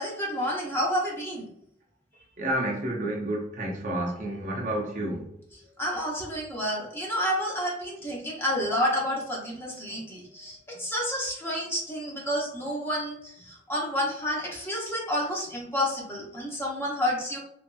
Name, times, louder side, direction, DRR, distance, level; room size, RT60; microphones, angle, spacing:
voice 1, 0.0-1.5 5.8-17.4, equal, 15° left, -3 dB, 0.7 m, -30 dB
voice 2, 2.4-5.3, right 1 dB, 40° right, -1 dB, 0.5 m, -30 dB
3.0 x 2.6 x 2.2 m, 0.72 s
head